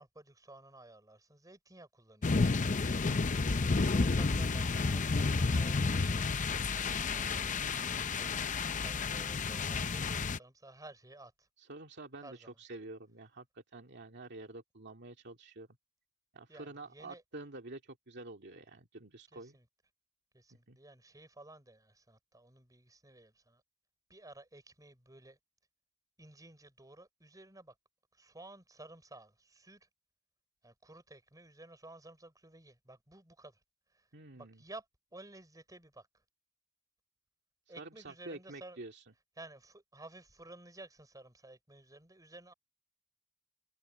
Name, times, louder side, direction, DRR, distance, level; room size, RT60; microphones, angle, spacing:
voice 1, 0.0-2.6 3.4-8.0 8.8-11.5 12.2-12.6 16.5-17.2 19.3-19.7 20.3-23.6 24.1-25.4 26.2-27.7 28.1-29.9 30.6-33.6 33.9-34.1 34.3-34.9 35.1-36.2 37.7-38.8 39.4-42.5, right 2 dB, 15° right, 6.2 m, -54 dB
sound 1, 2.2-10.4, left 4 dB, 40° left, 0.6 m, -31 dB
voice 2, 11.6-15.7 16.3-19.6 20.5-20.8 34.1-34.6 37.8-39.0, right 2 dB, 55° right, 2.3 m, -48 dB
head